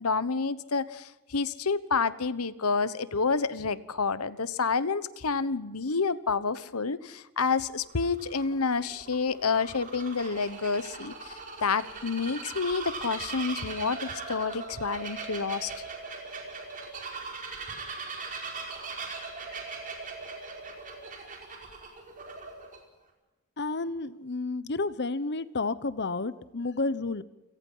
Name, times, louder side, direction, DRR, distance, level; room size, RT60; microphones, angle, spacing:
voice 1, 0.0-15.7, left 4 dB, 75° left, 16 dB, 1.1 m, -29 dB
Bird vocalization bird call bird song, 7.7-22.8, right 4 dB, 35° right, 4.9 m, -40 dB
voice 2, 23.6-27.2, left 3 dB, 50° left, 16 dB, 1.0 m, -31 dB
29.0 x 18.0 x 5.6 m, 1.1 s
head